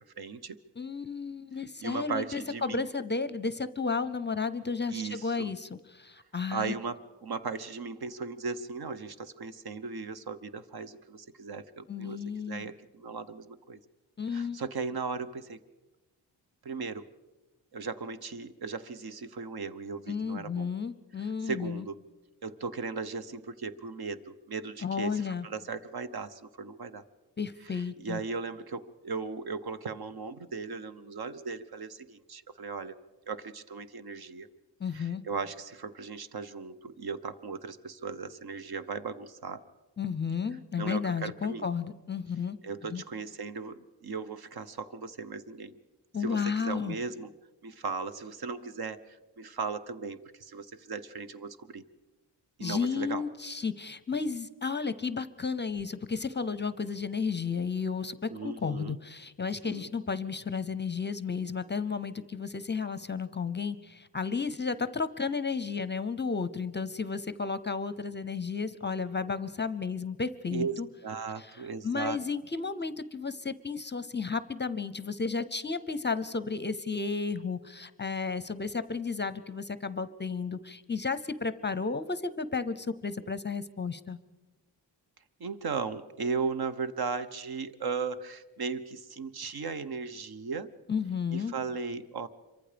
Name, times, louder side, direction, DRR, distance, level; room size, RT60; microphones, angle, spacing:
voice 1, 0.2-0.6 1.8-2.9 4.9-5.5 6.5-12.2 12.4-13.8 14.3-15.6 16.6-17.1 17.7-20.7 21.2-22.0 22.4-27.0 27.7-32.9 33.3-34.5 34.9-39.6 40.8-41.7 42.6-45.8 46.2-47.3 47.6-51.8 52.6-53.2 58.3-59.0 59.6-59.9 70.5-72.2 85.4-90.7 91.3-92.3, right 5 dB, 60° right, 11 dB, 1.0 m, -37 dB
voice 2, 0.8-6.7 11.9-12.7 14.2-14.6 20.1-21.9 24.8-25.5 27.4-28.2 34.8-35.2 40.0-42.6 42.9-43.0 46.1-47.0 52.6-70.9 71.4-71.6 71.8-84.2 90.9-91.5, left 5 dB, 25° left, 15 dB, 0.6 m, -33 dB
26.0 x 24.0 x 5.1 m, 1.1 s
wide cardioid pair, 135°, 43 cm